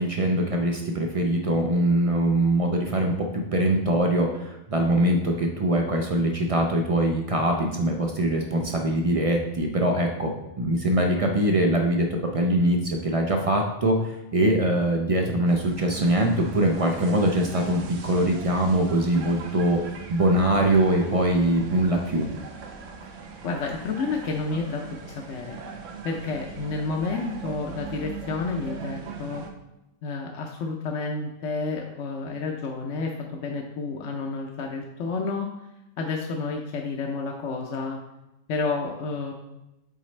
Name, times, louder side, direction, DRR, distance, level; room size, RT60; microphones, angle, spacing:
voice 1, 0.0-10.3 10.6-12.1 12.3-22.3, right 1 dB, 55° right, 2 dB, 0.4 m, -23 dB
sound 1, 15.5-29.5, right 5 dB, 70° right, 1.0 m, -40 dB
voice 2, 23.4-25.6 26.0-29.4 30.0-35.5 36.0-38.0 38.5-39.3, left 4 dB, 65° left, 0 dB, 0.9 m, -30 dB
7.3 x 4.1 x 3.2 m, 0.91 s
omnidirectional pair, 1.4 m